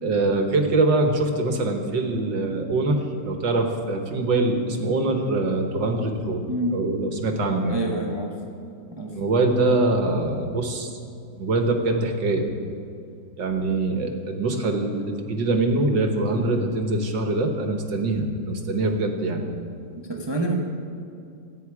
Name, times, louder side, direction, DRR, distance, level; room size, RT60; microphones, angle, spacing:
voice 1, 0.0-6.4 6.7-7.8 9.1-11.0 11.4-12.5 13.4-19.4, right 2 dB, 70° right, 4 dB, 1.9 m, -23 dB
voice 2, 7.7-8.3 9.0-9.1 20.1-20.5, right 2 dB, 15° right, 1 dB, 1.0 m, -27 dB
26.5 x 9.4 x 4.8 m, 2.4 s
omnidirectional pair, 2.1 m